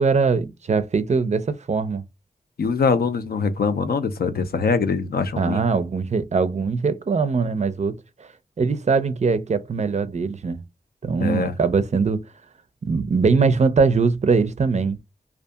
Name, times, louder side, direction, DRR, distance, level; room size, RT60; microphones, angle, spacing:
voice 1, 0.0-2.0 5.4-8.3 8.6-10.6 11.0-12.2 12.8-15.0, right 4 dB, 45° right, 0.4 m, -21 dB
voice 2, 2.6-5.6 11.2-11.5, left 5 dB, 75° left, 0.5 m, -23 dB
2.6 x 2.4 x 2.3 m
wide cardioid pair, 70°, 16 cm